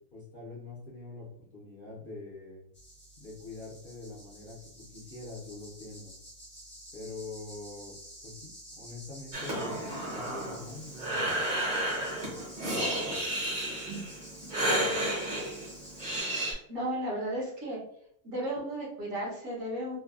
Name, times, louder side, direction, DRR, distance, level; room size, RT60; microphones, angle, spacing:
voice 1, 0.1-2.6 3.2-4.6 4.9-6.1 6.9-7.9 8.2-8.5 8.8-11.2, left 3 dB, 45° left, -6 dB, 0.8 m, -44 dB
sound 1, 2.7-16.2, right 1 dB, 10° left, 0.5 m, -50 dB
Breathing, 9.3-16.5, right 1 dB, 35° right, 0.9 m, -32 dB
voice 2, 16.7-17.8 18.2-20.0, right 1 dB, 65° right, -4 dB, 1.4 m, -34 dB
3.2 x 2.2 x 2.3 m, 0.67 s
omnidirectional pair, 1.5 m